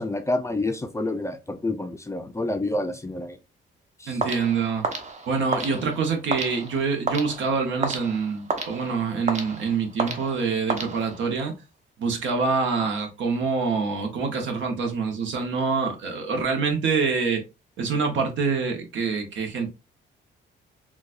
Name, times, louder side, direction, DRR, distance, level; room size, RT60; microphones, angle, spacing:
voice 1, 0.0-3.4 4.0-4.2, left 2 dB, 15° left, 0.4 m, -28 dB
voice 2, 4.1-4.8 5.3-11.5 12.0-17.4 17.8-19.7, right 5 dB, 70° right, 1.0 m, -26 dB
sound 1, 4.2-11.5, right 3 dB, 35° right, 0.8 m, -32 dB
4.0 x 2.3 x 2.4 m
cardioid pair, 90°, 20 cm